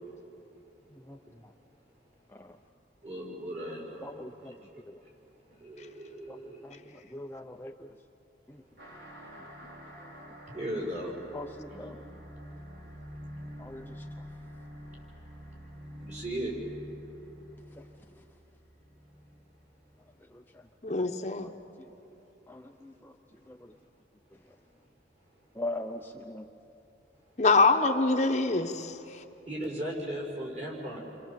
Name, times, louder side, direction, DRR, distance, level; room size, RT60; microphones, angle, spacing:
voice 1, 0.9-1.5 2.3-2.6 4.0-4.6 4.9-5.0 6.3-7.9 8.5-8.6 11.3-12.0 13.6-14.1 17.8-17.9 20.2-20.6 21.4-21.5 22.5-23.2 23.5-23.7 25.5-26.5 27.6-27.7, left 1 dB, 10° left, 3 dB, 0.6 m, -42 dB
voice 2, 3.0-5.1 5.5-7.0 10.5-11.1 11.7-11.9 16.0-16.5 29.4-31.0, right 1 dB, 40° right, -2 dB, 6.3 m, -38 dB
sound 1, 8.8-19.8, equal, 75° right, 5.0 m, -47 dB
voice 3, 20.8-21.5 27.4-28.9, left 3 dB, 40° left, 5 dB, 1.0 m, -24 dB
29.5 x 25.0 x 7.5 m, 2.9 s
head